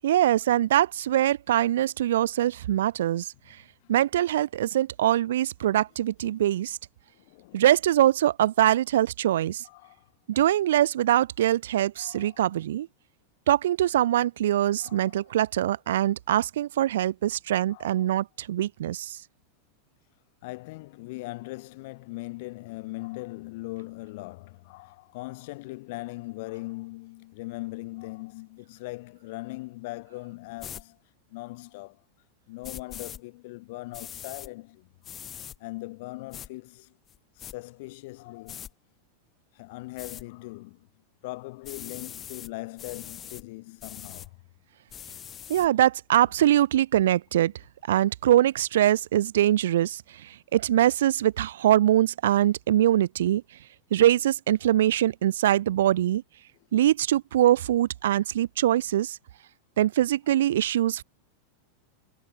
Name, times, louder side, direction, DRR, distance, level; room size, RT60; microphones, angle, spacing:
voice 1, 0.0-3.3 3.9-6.8 7.5-9.6 10.3-12.9 13.5-19.2 45.5-47.5 47.9-53.4 53.9-56.2 56.7-59.2 59.8-61.0, right 12 dB, 65° right, 0.4 m, -23 dB
voice 2, 7.1-7.6 9.6-10.1 12.0-12.4 14.8-15.2 17.7-18.1 20.4-31.0 31.3-32.0 32.5-34.9 35.6-36.9 37.4-38.7 39.5-40.9 41.2-44.3, left 22 dB, 55° left, 3.2 m, -40 dB
sound 1, 30.6-30.8 32.6-33.2 33.9-34.5 35.0-35.6 36.3-36.5 37.1-37.5 38.5-38.7 40.0-40.2 41.6-42.5 42.8-43.4 43.8-44.3 44.9-45.7, left 9 dB, 30° left, 4.4 m, -42 dB
figure-of-eight pair, 90°, 0 cm